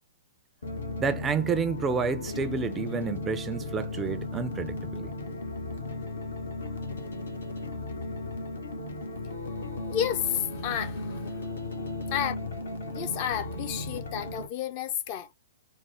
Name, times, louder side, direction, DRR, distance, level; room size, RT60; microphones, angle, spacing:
sound 1, 0.6-14.5, left 2 dB, 65° left, 0.9 m, -35 dB
voice 1, 1.0-5.1, right 6 dB, 15° right, 0.4 m, -30 dB
voice 2, 9.9-11.4 12.1-12.4 12.9-15.3, left 10 dB, 40° left, 0.5 m, -31 dB
3.3 x 2.0 x 3.2 m
figure-of-eight pair, 110°, 0 cm